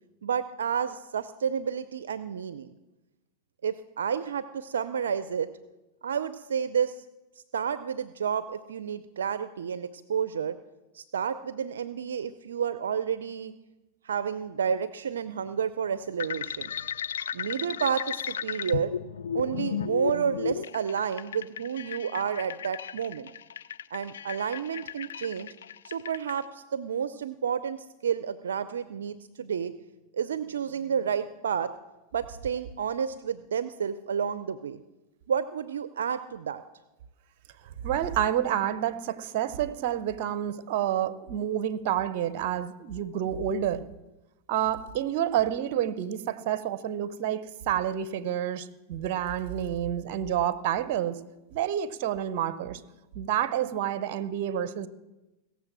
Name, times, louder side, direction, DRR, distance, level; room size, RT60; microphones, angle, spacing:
voice 1, 0.2-2.7 3.6-5.5 6.0-7.0 7.5-10.6 10.9-13.5 14.0-16.7 17.3-18.9 19.3-23.3 23.9-25.5 25.8-29.7 30.1-31.7 32.1-34.8 35.3-36.6, right 7 dB, 85° right, 13 dB, 0.5 m, -30 dB
sound 1, 16.2-26.4, left 8 dB, 85° left, 0.4 m, -35 dB
voice 2, 37.8-43.8 44.5-51.2 51.5-52.8 53.1-54.9, right 10 dB, 60° right, 15 dB, 0.9 m, -29 dB
17.0 x 7.2 x 7.4 m, 1.0 s
hypercardioid pair, 115°, 0 cm